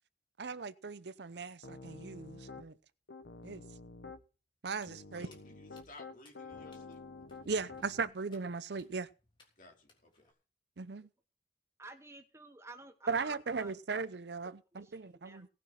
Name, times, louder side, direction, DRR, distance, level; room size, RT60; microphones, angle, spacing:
voice 1, 0.4-2.8 3.4-3.6 4.6-5.3 7.5-9.1 10.8-11.1 13.1-15.5, right 4 dB, 60° right, 0.6 m, -38 dB
Piano, 1.6-2.7 3.1-4.2 4.9-8.1, left 3 dB, 75° left, 1.1 m, -49 dB
Walk footsteps, 4.7-10.3, left 2 dB, 25° left, 3.4 m, -67 dB
voice 2, 5.2-7.0 9.6-10.3, left 2 dB, 45° left, 3.2 m, -56 dB
voice 3, 11.8-13.7 14.7-15.5, right 2 dB, 15° right, 1.0 m, -52 dB
18.0 x 6.2 x 5.8 m
head